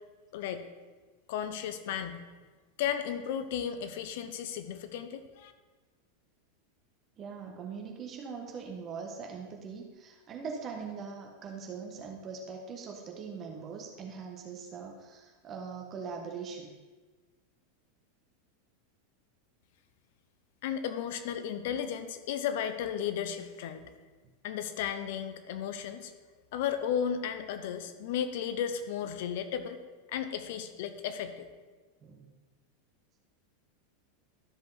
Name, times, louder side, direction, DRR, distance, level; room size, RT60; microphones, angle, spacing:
voice 1, 1.3-2.2 2.8-5.5 20.6-23.9 24.4-26.1 26.5-29.8 30.1-31.5, left 8 dB, 65° left, 10 dB, 0.8 m, -34 dB
voice 2, 7.2-16.8 32.0-32.3, right 5 dB, 35° right, 1 dB, 1.2 m, -41 dB
13.0 x 5.2 x 4.0 m, 1.3 s
hypercardioid pair, 100°, 0 cm